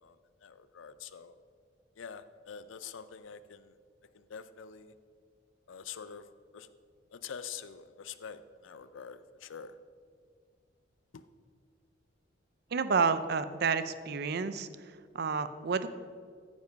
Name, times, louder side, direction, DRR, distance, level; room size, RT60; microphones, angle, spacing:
voice 1, 0.0-1.3 2.0-3.7 4.1-4.9 5.7-6.3 6.5-6.7 7.1-9.8 11.1-11.2, left 7 dB, 85° left, 13 dB, 0.5 m, -46 dB
voice 2, 12.7-14.7 15.1-15.9, right 5 dB, 55° right, 12 dB, 0.5 m, -29 dB
14.5 x 5.3 x 5.2 m, 2.1 s
head